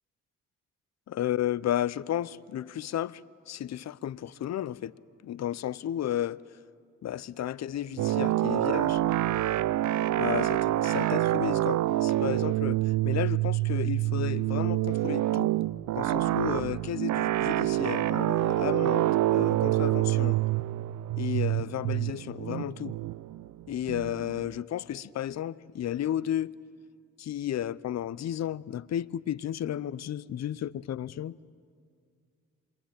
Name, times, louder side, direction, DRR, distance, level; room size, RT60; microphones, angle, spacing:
voice 1, 1.1-3.2 3.5-5.0 5.2-6.6 7.0-9.0 10.1-15.5 15.9-20.4 21.2-23.0 23.7-26.6 27.2-31.4, left 11 dB, 50° left, 0.8 m, -33 dB
sound 1, 8.0-24.5, right 15 dB, 60° right, 0.6 m, -27 dB
27.5 x 22.5 x 8.8 m
hypercardioid pair, 55°, 33 cm